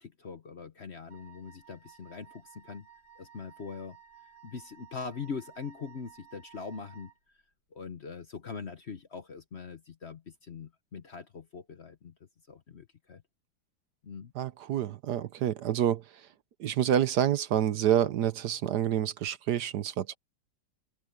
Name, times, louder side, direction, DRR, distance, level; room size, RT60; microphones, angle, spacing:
voice 1, 0.0-2.9 3.2-4.0 4.4-7.1 7.7-12.1 12.5-13.2 14.0-14.3, left 5 dB, 45° left, 1.0 m, -42 dB
Wind instrument woodwind instrument, 1.1-7.2, right 8 dB, 90° left, 7.1 m, -56 dB
voice 2, 14.3-16.3 16.6-20.2, right 10 dB, 65° right, 1.3 m, -28 dB
omnidirectional pair, 2.0 m